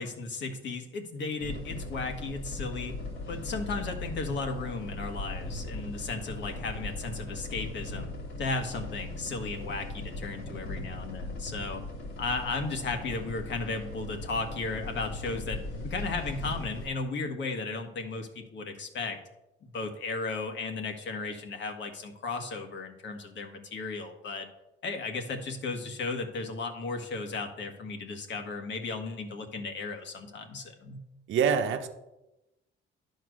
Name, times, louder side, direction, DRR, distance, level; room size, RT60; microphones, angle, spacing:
voice 1, 0.0-3.0 3.3-8.1 8.4-11.8 12.2-19.2 19.6-24.5 24.8-31.0, left 3 dB, 65° left, 5 dB, 1.6 m, -35 dB
sound 1, 1.4-16.9, left 2 dB, 80° left, 2.7 m, -39 dB
voice 2, 31.3-31.9, right 7 dB, 80° right, 7 dB, 0.9 m, -25 dB
11.0 x 4.5 x 6.3 m, 0.94 s
cardioid pair, 90°, 20 cm